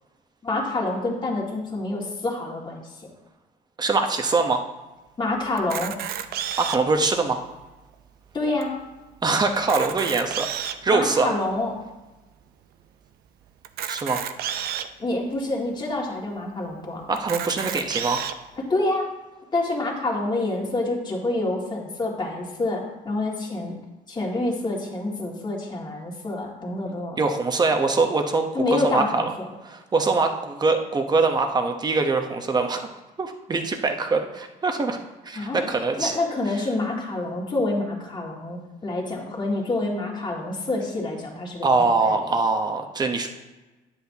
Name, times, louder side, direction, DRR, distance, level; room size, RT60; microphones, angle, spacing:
voice 1, 0.4-3.1 5.2-6.0 8.3-8.8 10.9-11.7 15.0-17.0 18.6-19.1 19.5-23.8 24.1-27.2 28.5-29.5 35.4-35.7 36.0-42.3, left 2 dB, 25° left, -2 dB, 2.1 m, -27 dB
voice 2, 3.8-4.7 6.6-7.4 9.2-11.3 13.9-14.2 17.1-18.3 27.2-29.2 29.6-32.9 33.2-36.2 41.6-43.3, right 3 dB, 25° right, 5 dB, 0.9 m, -23 dB
Camera, 5.6-7.0 7.6-7.7 7.9-8.1 8.6-8.7 9.5-10.9 11.5-11.6 13.6-14.9 15.6-15.7 16.0-16.1 17.2-18.3, right 10 dB, 65° right, 0.6 m, -31 dB
10.0 x 8.2 x 2.8 m, 1.1 s
cardioid pair, 110°, 17 cm